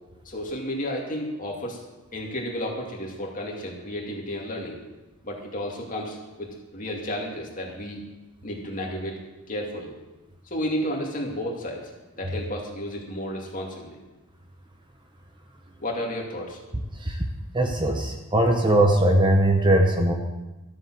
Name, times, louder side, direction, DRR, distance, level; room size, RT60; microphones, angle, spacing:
voice 1, 0.2-1.8 2.1-4.8 5.2-8.0 8.4-9.2 9.5-9.9 10.5-11.8 12.2-14.0 15.8-16.6, equal, 35° left, -1 dB, 2.5 m, -32 dB
voice 2, 17.5-20.1, right 1 dB, 20° right, 3 dB, 1.0 m, -20 dB
13.0 x 7.5 x 7.7 m, 1.1 s
head